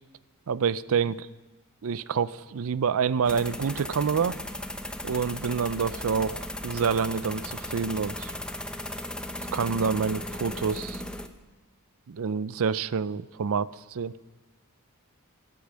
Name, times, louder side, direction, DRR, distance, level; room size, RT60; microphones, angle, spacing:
voice 1, 0.5-1.2 1.8-4.4 5.0-8.3 9.5-11.0 12.1-14.1, right 6 dB, 65° right, 17 dB, 0.5 m, -27 dB
sound 1, 3.3-11.3, left 1 dB, 5° left, 0.7 m, -36 dB
23.5 x 8.5 x 6.2 m, 1.2 s
head